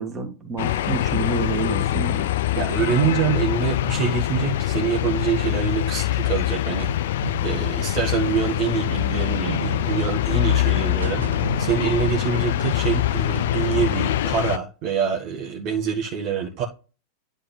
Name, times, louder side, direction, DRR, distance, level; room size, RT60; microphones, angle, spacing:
voice 1, 0.0-2.3, right 4 dB, 15° right, 2.0 m, -29 dB
sound 1, 0.6-14.6, left 13 dB, 55° left, 0.4 m, -24 dB
voice 2, 2.5-7.0 7.4-11.2 11.6-16.6, right 7 dB, 40° right, 1.4 m, -25 dB
sound 2, 6.8-12.2 12.5-14.0, right 5 dB, 70° right, 1.0 m, -34 dB
9.9 x 4.0 x 3.8 m
figure-of-eight pair, 90°, 0 cm